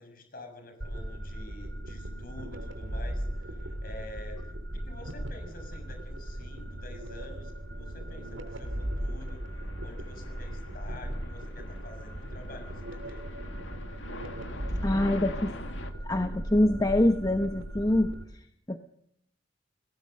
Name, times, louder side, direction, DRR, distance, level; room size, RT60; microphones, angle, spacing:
voice 1, 0.0-9.4 9.8-13.2, left 1 dB, 50° left, 5 dB, 6.5 m, -48 dB
sound 1, 0.8-18.3, right 1 dB, 85° right, 2.9 m, -37 dB
sound 2, 8.1-15.9, left 2 dB, 85° left, 2.2 m, -46 dB
voice 2, 14.8-15.5 16.0-18.1 18.7-18.8, left 1 dB, 20° left, 6 dB, 1.0 m, -25 dB
28.0 x 18.5 x 6.6 m, 0.72 s
head